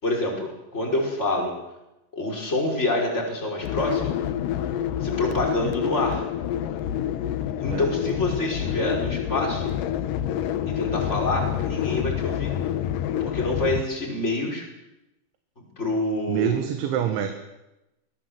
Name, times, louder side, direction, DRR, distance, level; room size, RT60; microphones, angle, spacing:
voice 1, 0.0-1.5 2.1-4.1 5.0-6.2 7.6-9.6 10.7-12.5 13.2-14.7 15.8-16.6, left 2 dB, 15° left, 0 dB, 5.3 m, -27 dB
sound 1, 3.6-13.8, left 10 dB, 85° left, 1.9 m, -27 dB
voice 2, 16.3-17.3, right 10 dB, 80° right, 6 dB, 3.8 m, -25 dB
22.5 x 18.5 x 7.8 m, 0.95 s
omnidirectional pair, 5.4 m